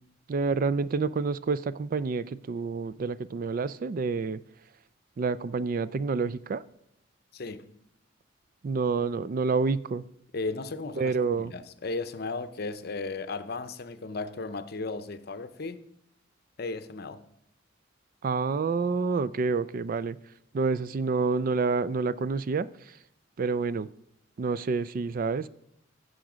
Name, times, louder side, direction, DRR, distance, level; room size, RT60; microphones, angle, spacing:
voice 1, 0.3-4.4 5.2-6.6 8.6-10.0 11.0-11.5 18.2-20.2 20.5-23.0 23.4-23.9 24.4-25.5, right 4 dB, 45° right, 0.4 m, -28 dB
voice 2, 7.3-7.7 10.3-11.1 11.4-15.8 16.6-17.2, left 3 dB, 55° left, 0.7 m, -35 dB
15.5 x 6.4 x 5.0 m
head